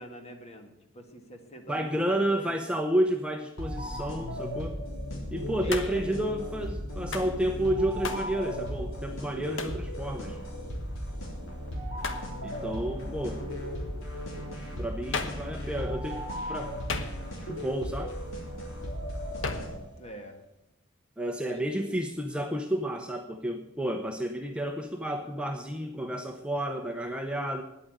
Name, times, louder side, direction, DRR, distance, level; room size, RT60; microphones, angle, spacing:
voice 1, 0.0-2.6 5.6-6.0 12.8-13.6 16.0-16.4 20.0-20.4 21.4-22.0, right 1 dB, 30° left, 5 dB, 1.7 m, -45 dB
voice 2, 1.7-4.8 5.3-10.4 12.4-13.4 14.8-16.2 16.5-16.7 17.4-18.2 21.2-27.6, right 1 dB, 5° right, 4 dB, 0.7 m, -31 dB
sound 1, 3.6-20.1, equal, 80° left, 3.5 m, -36 dB
Hands, 5.7-6.1 7.1-7.4 8.0-8.3 9.6-9.8 12.0-12.3 15.1-15.5 16.9-17.5 19.4-19.8, left 4 dB, 65° left, 1.1 m, -34 dB
10.0 x 8.6 x 9.0 m, 0.91 s
head